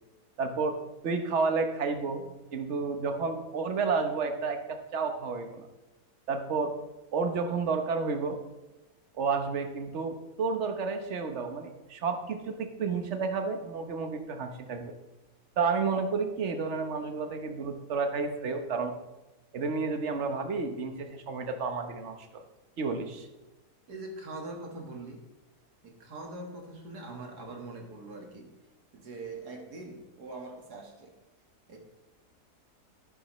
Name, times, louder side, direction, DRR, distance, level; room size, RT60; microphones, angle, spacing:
voice 1, 0.4-0.8 1.0-5.7 6.3-6.7 7.1-8.4 9.2-14.9 15.6-18.9 19.5-22.4 22.8-23.3, right 4 dB, 50° right, 6 dB, 1.3 m, -31 dB
voice 2, 23.9-25.2 25.8-28.5 28.9-31.1 31.7-31.8, right 2 dB, 85° right, 2 dB, 2.2 m, -42 dB
11.5 x 9.8 x 3.2 m, 1.1 s
omnidirectional pair, 1.7 m